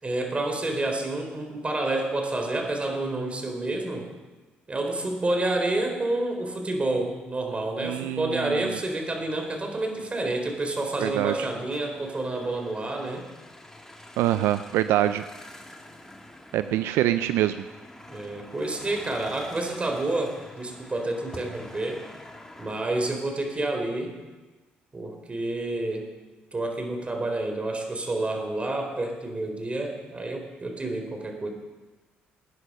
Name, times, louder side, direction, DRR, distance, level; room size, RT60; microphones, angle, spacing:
voice 1, 0.0-4.1 4.7-13.3 18.1-22.0 22.6-24.2 24.9-26.1 26.5-31.5, right 2 dB, 30° right, 4 dB, 3.8 m, -29 dB
voice 2, 7.8-8.8 11.0-11.5 14.2-15.2 16.5-17.6, right 13 dB, 80° right, 12 dB, 0.4 m, -25 dB
sound 1, 8.5-23.4, left 1 dB, 10° left, 2.2 m, -47 dB
19.0 x 9.8 x 5.5 m, 1.2 s
supercardioid pair, 60°, 4 cm